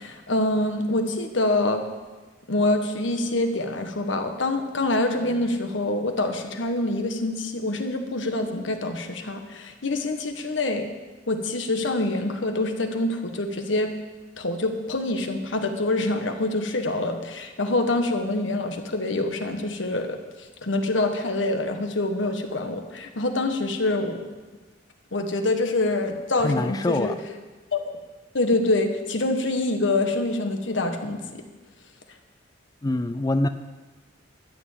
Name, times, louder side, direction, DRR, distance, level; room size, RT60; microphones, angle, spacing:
voice 1, 0.0-1.8 2.5-10.9 11.3-13.9 14.4-20.2 20.6-24.2 25.1-27.1 27.7-27.8 28.3-31.4, left 2 dB, 85° left, 6 dB, 1.4 m, -25 dB
voice 2, 26.4-27.2 32.8-33.5, left 2 dB, 20° left, 10 dB, 0.4 m, -24 dB
12.5 x 7.0 x 8.8 m, 1.3 s
head